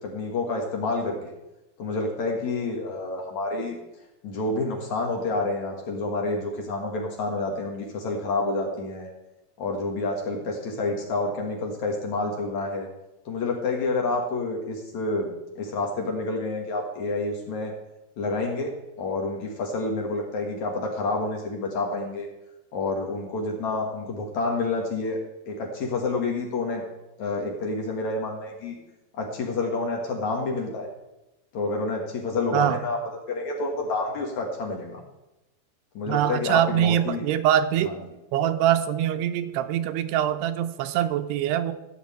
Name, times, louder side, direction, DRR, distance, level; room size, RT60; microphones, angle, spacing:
voice 1, 0.0-1.3 1.8-3.7 4.2-9.1 9.6-12.9 13.3-17.7 18.2-18.7 19.0-22.3 22.7-25.2 25.5-26.8 27.2-28.7 29.1-30.9 31.5-33.0 33.3-35.0 35.9-37.2, left 3 dB, 55° left, 0 dB, 2.4 m, -28 dB
voice 2, 36.1-37.9 38.3-41.7, right 11 dB, 85° right, 9 dB, 2.8 m, -23 dB
14.5 x 5.0 x 8.5 m, 0.97 s
omnidirectional pair, 4.6 m